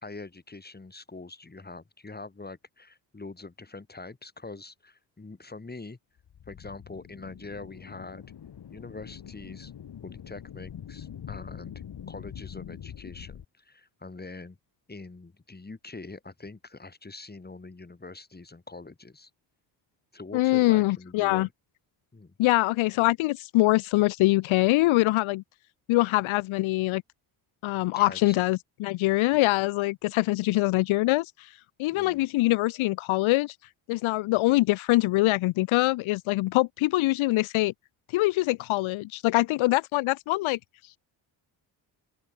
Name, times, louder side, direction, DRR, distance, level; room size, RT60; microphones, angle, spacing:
voice 1, 0.0-6.0 6.5-8.3 8.7-9.7 10.0-11.7 12.1-14.6 14.9-19.3 20.1-21.5 22.1-22.3 27.9-28.4 31.9-32.2, left 3 dB, 20° left, 4.4 m, -44 dB
sound 1, 6.2-13.4, left 9 dB, 55° left, 4.1 m, -44 dB
voice 2, 20.3-21.5 22.4-25.4 25.9-27.0 27.6-33.5 33.9-37.7 38.1-40.6, left 19 dB, 85° left, 1.0 m, -24 dB
open air
cardioid pair, 75°, 46 cm